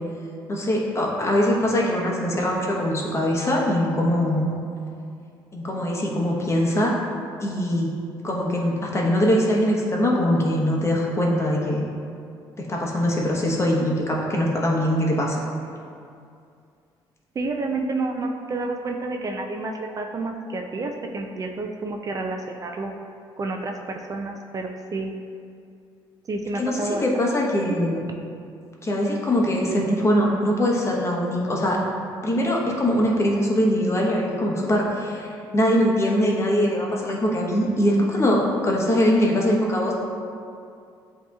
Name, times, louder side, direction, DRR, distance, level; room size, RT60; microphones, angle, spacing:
voice 1, 0.5-4.5 5.5-6.9 7.4-7.9 8.2-11.8 12.6-15.4 26.6-28.0 28.8-31.8 32.2-40.0, equal, 30° left, -2 dB, 0.9 m, -22 dB
voice 2, 17.4-22.9 23.4-25.1 26.3-27.0, right 2 dB, 40° right, 3 dB, 0.4 m, -29 dB
8.1 x 2.9 x 2.3 m, 2.4 s
supercardioid pair, 75°, 9 cm